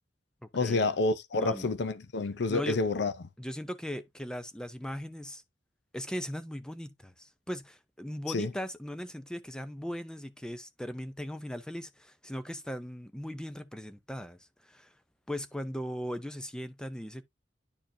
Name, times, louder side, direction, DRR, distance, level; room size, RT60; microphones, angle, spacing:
voice 1, 0.5-3.1 8.3-8.5, left 3 dB, 65° left, 0.6 m, -28 dB
voice 2, 1.3-1.7 2.5-2.8 3.4-5.4 5.9-14.9 15.3-17.2, equal, 5° left, 0.5 m, -38 dB
10.5 x 4.5 x 2.7 m
head